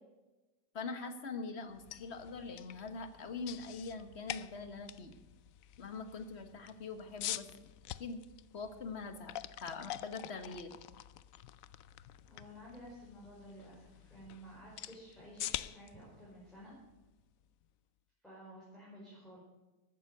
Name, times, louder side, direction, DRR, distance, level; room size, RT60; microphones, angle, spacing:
voice 1, 0.7-5.1 5.8-7.5 8.0-8.2 8.5-10.7, left 4 dB, 40° left, 8 dB, 1.5 m, -43 dB
sound 1, 1.7-17.6, left 13 dB, 70° left, 0.8 m, -47 dB
voice 2, 12.2-16.8 18.2-19.4, equal, ahead, -8 dB, 4.9 m, -53 dB
14.0 x 9.5 x 6.7 m, 1.1 s
omnidirectional pair, 1.8 m